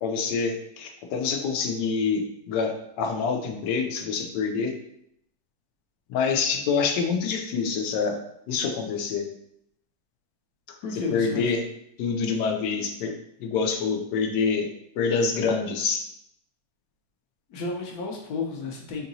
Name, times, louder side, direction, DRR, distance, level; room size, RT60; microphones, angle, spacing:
voice 1, 0.0-4.8 6.1-8.2 8.5-9.3 10.9-11.6 12.0-13.1 13.4-14.7 15.0-16.0, left 5 dB, 90° left, 4 dB, 1.2 m, -26 dB
voice 2, 10.8-11.5 17.5-19.1, left 4 dB, 70° left, 1 dB, 1.1 m, -32 dB
4.5 x 2.8 x 2.6 m, 0.75 s
omnidirectional pair, 1.8 m